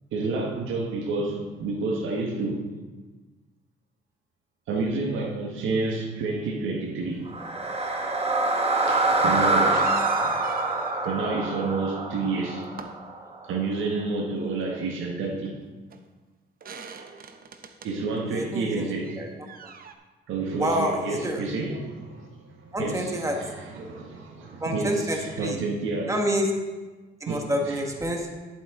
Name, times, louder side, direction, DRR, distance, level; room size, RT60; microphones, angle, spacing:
voice 1, 0.1-2.7 4.7-7.3 8.9-9.9 10.2-10.3 11.0-12.7 13.4-15.6 17.8-19.2 20.3-23.1 23.4-26.1 27.3-27.5, right 3 dB, 80° right, 1 dB, 1.5 m, -29 dB
sound 1, 7.3-13.4, right 2 dB, 30° right, 1.4 m, -25 dB
voice 2, 8.8-9.3 18.3-19.3 19.6-19.7 20.6-21.5 22.7-23.4 24.6-25.6 26.1-26.5 27.2-28.3, equal, 15° right, 1 dB, 1.7 m, -28 dB
sound 2, 9.7-11.1 12.4-12.9 15.4-15.5 15.9-16.0 16.6-17.9 19.0-19.9, right 5 dB, 45° right, 0.9 m, -40 dB
11.0 x 8.2 x 3.8 m, 1.3 s
cardioid pair, 90°, 20 cm